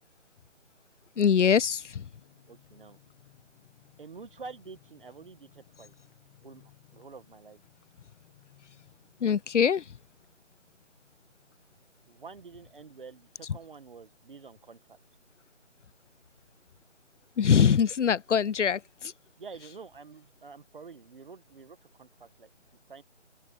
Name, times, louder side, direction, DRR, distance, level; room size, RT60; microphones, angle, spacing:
sound 1, 1.1-13.5 13.8-13.9 14.1-14.4, left 15 dB, 5° left, 1.3 m, -62 dB
voice 1, 1.2-2.1 9.2-9.8 17.4-19.1, left 7 dB, 80° left, 0.7 m, -23 dB
voice 2, 2.5-3.0 4.0-5.9 6.4-7.6 12.1-15.0 19.4-22.5 22.9-23.0, right 4 dB, 45° right, 1.9 m, -48 dB
open air
figure-of-eight pair, 170°, 35 cm